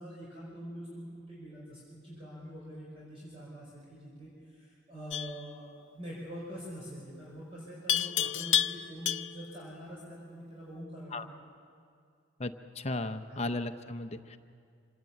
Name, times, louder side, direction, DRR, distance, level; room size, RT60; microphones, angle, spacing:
voice 1, 0.0-11.2 13.3-13.4, equal, 30° right, -6 dB, 5.1 m, -45 dB
Livestock farm animals working animals, 5.1-5.4 7.9-9.5, left 11 dB, 65° left, 0.6 m, -30 dB
voice 2, 12.4-14.4, left 2 dB, 30° left, 9 dB, 0.7 m, -35 dB
26.0 x 18.5 x 8.4 m, 2.3 s
head